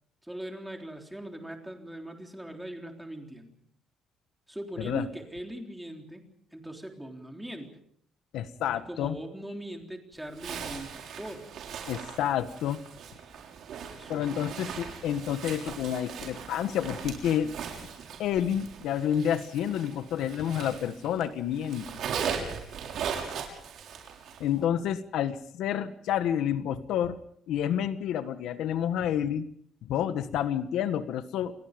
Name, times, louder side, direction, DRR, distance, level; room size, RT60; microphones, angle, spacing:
voice 1, 0.3-3.6 4.5-6.2 6.5-7.7 8.7-11.5 13.9-14.6 23.0-23.4, right 1 dB, 5° right, 3 dB, 3.7 m, -40 dB
voice 2, 8.3-9.2 11.9-12.8 14.1-17.5 18.2-22.0 24.4-27.2 27.5-29.4 29.8-31.5, left 10 dB, 75° left, 11 dB, 1.5 m, -29 dB
Zipper (clothing), 10.3-21.2 21.5-24.5, right 7 dB, 60° right, 6.5 m, -39 dB
30.0 x 22.0 x 5.3 m, 0.66 s
cardioid pair, 150°, 0 cm